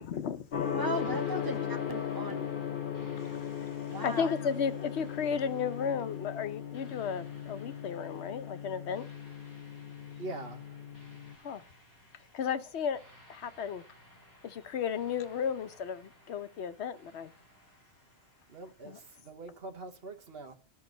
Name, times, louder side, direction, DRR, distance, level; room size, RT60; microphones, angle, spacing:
voice 1, 0.0-0.8 4.0-9.1 11.4-11.6 12.3-13.0 13.3-13.8 14.4-17.3 18.8-19.0, left 7 dB, 85° left, 1.1 m, -34 dB
Gong, 0.5-11.3, left 8 dB, 55° left, 0.9 m, -37 dB
voice 2, 0.7-2.5 3.9-4.3, right 1 dB, 20° right, 1.3 m, -37 dB
sound 1, 0.9-19.2, equal, 15° left, 2.8 m, -58 dB
voice 3, 10.2-10.8 18.5-20.6, right 2 dB, 65° right, 1.5 m, -43 dB
13.0 x 5.5 x 3.9 m
omnidirectional pair, 1.1 m